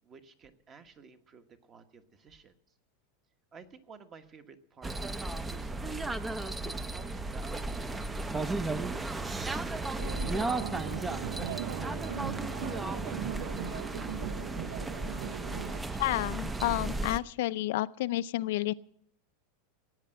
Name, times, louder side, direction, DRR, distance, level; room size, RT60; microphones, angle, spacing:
voice 1, 0.0-2.6 3.5-9.2 9.7-14.0, right 5 dB, 25° right, 8 dB, 1.2 m, -54 dB
sound 1, 4.8-17.2, right 2 dB, 10° right, 0.6 m, -35 dB
sound 2, 10.0-15.8, right 11 dB, 80° right, 0.6 m, -39 dB
voice 2, 16.0-18.7, left 16 dB, 70° left, 13 dB, 0.5 m, -30 dB
17.0 x 8.9 x 7.7 m, 0.70 s
supercardioid pair, 150°, 0 cm